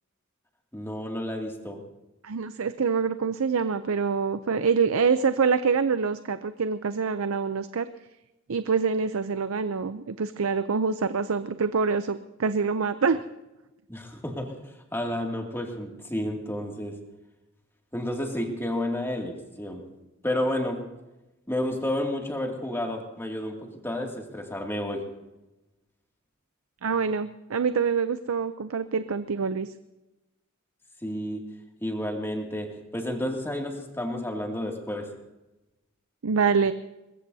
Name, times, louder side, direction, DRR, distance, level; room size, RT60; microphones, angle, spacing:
voice 1, 0.7-1.8 13.9-17.0 17.9-19.9 20.2-20.8 21.5-25.1 31.0-31.4 31.8-35.1, left 1 dB, 10° left, 1 dB, 2.4 m, -31 dB
voice 2, 2.2-7.9 8.5-13.2 26.8-29.7 36.2-36.7, right 5 dB, 90° right, 12 dB, 0.6 m, -25 dB
22.5 x 21.0 x 2.8 m, 1.0 s
head